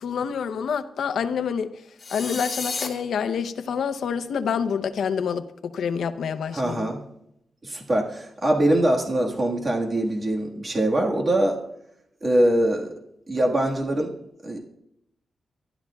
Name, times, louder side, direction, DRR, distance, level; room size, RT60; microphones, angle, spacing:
voice 1, 0.0-1.7 2.1-6.9, left 7 dB, 80° left, 0.7 m, -27 dB
sound 1, 2.0-2.9, left 4 dB, 40° left, 2.2 m, -31 dB
voice 2, 6.5-7.0 7.6-11.6 12.2-12.9 13.3-14.1 14.4-14.6, right 1 dB, 30° right, 1.7 m, -23 dB
24.0 x 12.0 x 2.4 m
wide cardioid pair, 115°, 0 cm